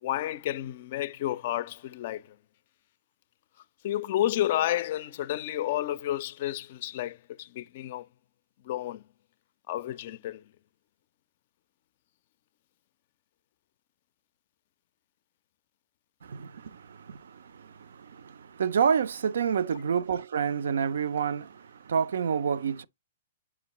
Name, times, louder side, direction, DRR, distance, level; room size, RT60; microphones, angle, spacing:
voice 1, 0.0-2.4 3.8-8.1 8.6-9.0 9.7-10.4, left 13 dB, 50° left, 0.4 m, -31 dB
voice 2, 16.2-22.8, right 7 dB, 70° right, 0.3 m, -29 dB
7.5 x 4.8 x 2.9 m
hypercardioid pair, 120°, 0 cm